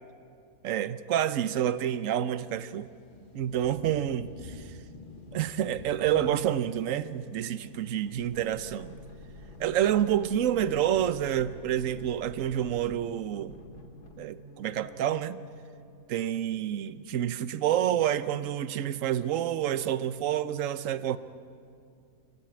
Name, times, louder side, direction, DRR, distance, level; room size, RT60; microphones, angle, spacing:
voice 1, 0.6-2.9 3.3-4.6 5.3-9.0 9.6-13.6 14.2-15.4 16.1-21.2, right 10 dB, 60° right, 1.0 m, -28 dB
sound 1, 1.8-13.4, left 3 dB, 35° left, 1.6 m, -51 dB
sound 2, 7.3-15.9, left 1 dB, 80° left, 2.5 m, -49 dB
24.5 x 18.0 x 8.7 m
omnidirectional pair, 1.7 m